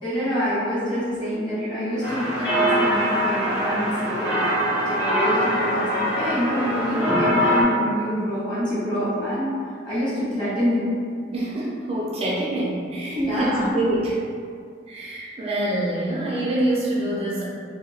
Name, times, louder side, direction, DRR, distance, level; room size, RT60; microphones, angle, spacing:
voice 1, 0.0-9.6 9.8-10.9 13.1-13.7, equal, 25° left, -11 dB, 1.1 m, -26 dB
sound 1, 2.0-7.6, equal, 65° left, 1.1 m, -23 dB
voice 2, 11.3-14.2 14.9-17.4, right 1 dB, 35° right, -6 dB, 0.4 m, -26 dB
2.8 x 2.1 x 2.8 m, 2.2 s
head